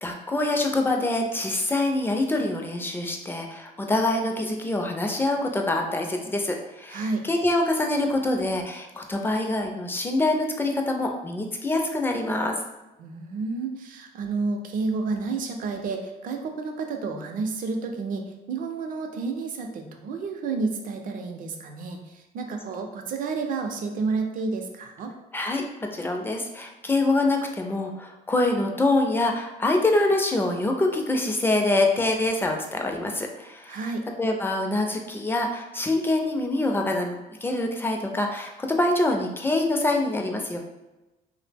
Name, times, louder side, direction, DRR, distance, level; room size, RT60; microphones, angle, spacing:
voice 1, 0.0-12.6 25.3-33.8 34.2-40.6, left 2 dB, 15° left, 2 dB, 0.4 m, -25 dB
voice 2, 6.9-7.2 13.0-25.1 33.7-34.0, right 4 dB, 55° right, 4 dB, 0.4 m, -30 dB
2.6 x 2.0 x 3.3 m, 1.0 s
cardioid pair, 110°, 17 cm